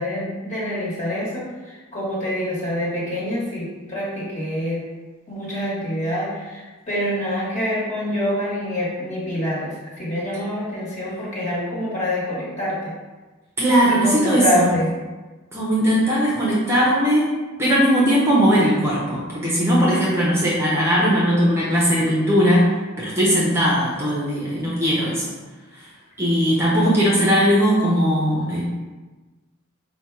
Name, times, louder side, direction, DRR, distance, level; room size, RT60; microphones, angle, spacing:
voice 1, 0.0-4.9 5.3-12.9 13.9-14.9 19.9-20.1 26.7-27.0, equal, 35° left, -7 dB, 1.5 m, -26 dB
voice 2, 13.6-14.7 15.5-17.3 17.6-22.7 23.0-25.3 26.2-28.6, equal, 10° right, -6 dB, 0.7 m, -19 dB
4.4 x 2.2 x 4.5 m, 1.2 s
head